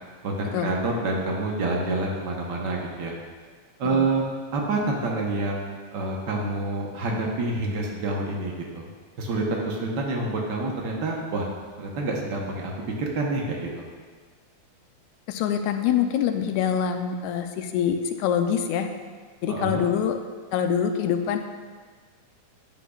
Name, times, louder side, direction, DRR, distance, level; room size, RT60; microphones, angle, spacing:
voice 1, 0.2-3.1 3.8-4.2 4.5-8.9 9.2-11.5 11.8-12.7 13.0-13.8 19.5-19.9, right 2 dB, 80° right, -1 dB, 0.9 m, -27 dB
voice 2, 15.3-18.9 19.4-20.2 20.5-21.4, left 8 dB, 80° left, 6 dB, 1.9 m, -25 dB
10.5 x 9.1 x 2.4 m, 1.5 s
omnidirectional pair, 3.4 m